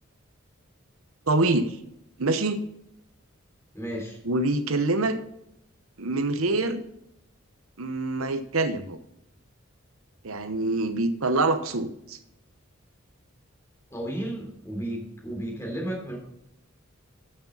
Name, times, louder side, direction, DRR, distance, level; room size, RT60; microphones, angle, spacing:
voice 1, 1.3-1.7 2.2-2.6 4.2-5.2 6.0-6.8 7.8-9.0 10.2-12.2, right 2 dB, 85° right, 10 dB, 0.9 m, -25 dB
voice 2, 3.7-4.2 13.9-16.2, right 1 dB, 15° left, -1 dB, 3.5 m, -33 dB
13.0 x 6.7 x 4.0 m, 0.79 s
head